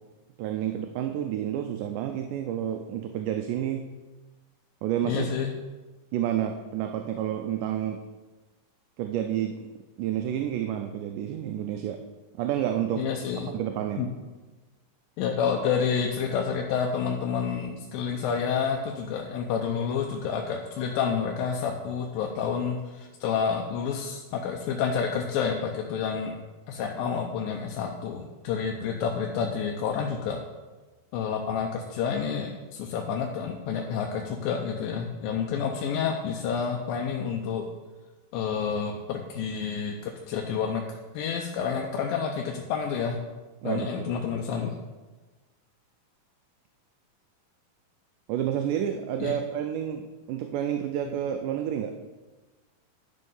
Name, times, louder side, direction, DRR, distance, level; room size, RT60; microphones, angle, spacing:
voice 1, 0.4-3.8 4.8-5.3 6.1-8.0 9.0-9.6 10.0-12.0 12.4-13.1 13.4-14.0 43.6-44.1 48.3-52.0, right 10 dB, 80° right, 5 dB, 2.0 m, -29 dB
voice 2, 5.0-5.5 13.0-13.5 14.0-14.1 15.2-26.4 26.7-30.4 31.1-37.7 38.3-40.8 41.1-43.2 43.6-44.8 49.2-49.4, left 6 dB, 90° left, 1 dB, 2.5 m, -29 dB
11.0 x 5.4 x 5.4 m, 1.2 s
omnidirectional pair, 4.0 m